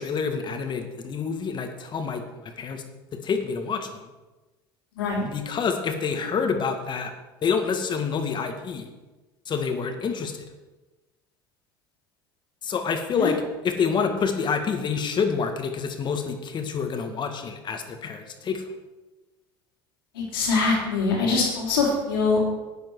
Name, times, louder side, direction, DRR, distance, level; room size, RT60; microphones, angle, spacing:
voice 1, 0.0-2.8 3.1-4.1 5.3-7.1 7.4-8.9 9.5-10.5 12.6-18.6, left 5 dB, 40° left, 6 dB, 1.9 m, -27 dB
voice 2, 20.1-22.4, left 4 dB, 90° left, -2 dB, 3.8 m, -23 dB
12.5 x 9.2 x 4.8 m, 1.2 s
hypercardioid pair, 80°, 12 cm